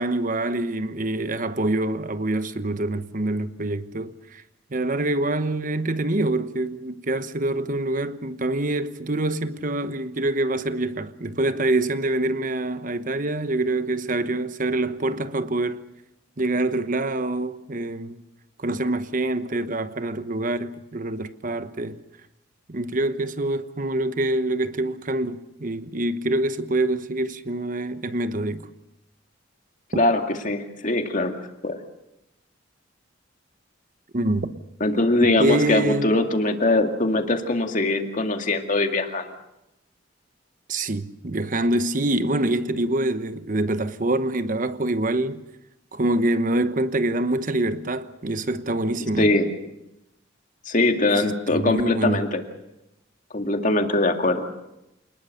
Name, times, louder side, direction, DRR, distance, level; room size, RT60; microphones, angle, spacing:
voice 1, 0.0-4.4 4.7-15.9 16.4-18.2 18.6-22.0 22.7-28.7 34.1-34.6 35.4-36.1 40.7-45.4 45.9-49.3 51.2-52.3, right 1 dB, 45° right, 1.0 m, -25 dB
voice 2, 29.9-31.3 31.6-31.8 34.8-39.3 49.2-49.5 50.7-52.4 53.3-54.5, left 2 dB, 40° left, 2.1 m, -22 dB
28.0 x 20.0 x 6.7 m
head